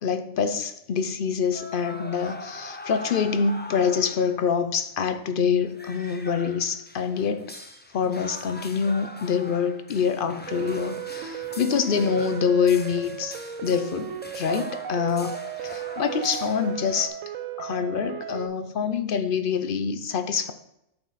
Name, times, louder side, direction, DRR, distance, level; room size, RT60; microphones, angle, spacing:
voice 1, 0.0-7.5 7.9-13.3 13.6-17.2 17.6-20.5, left 6 dB, 55° left, 10 dB, 0.7 m, -26 dB
sound 1, 1.5-4.5 4.8-4.9 5.2-17.1, left 1 dB, 15° left, 0.4 m, -42 dB
sound 2, 10.5-18.5, right 10 dB, 80° right, 1.0 m, -35 dB
8.0 x 6.4 x 4.1 m, 0.82 s
omnidirectional pair, 1.3 m